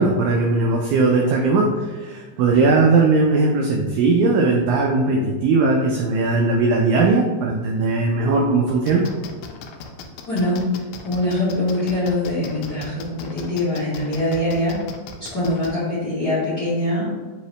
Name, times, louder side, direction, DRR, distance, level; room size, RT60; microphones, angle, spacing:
voice 1, 0.0-1.7 2.0-9.0, right 3 dB, 85° right, 0 dB, 1.7 m, -18 dB
sound 1, 8.9-15.7, left 5 dB, 85° left, 2.3 m, -37 dB
voice 2, 10.3-14.8 15.2-17.1, left 1 dB, 55° left, -12 dB, 1.1 m, -23 dB
5.4 x 2.8 x 3.1 m, 1.4 s
omnidirectional pair, 4.0 m